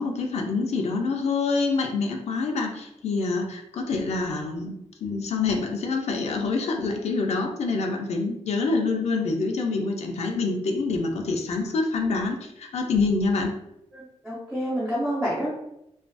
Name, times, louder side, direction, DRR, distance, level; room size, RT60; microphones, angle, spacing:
voice 1, 0.0-13.6, left 3 dB, 70° left, 2 dB, 0.4 m, -26 dB
voice 2, 13.9-15.5, equal, 5° right, -8 dB, 0.7 m, -28 dB
2.4 x 2.4 x 2.2 m, 0.83 s
wide cardioid pair, 115°, 12 cm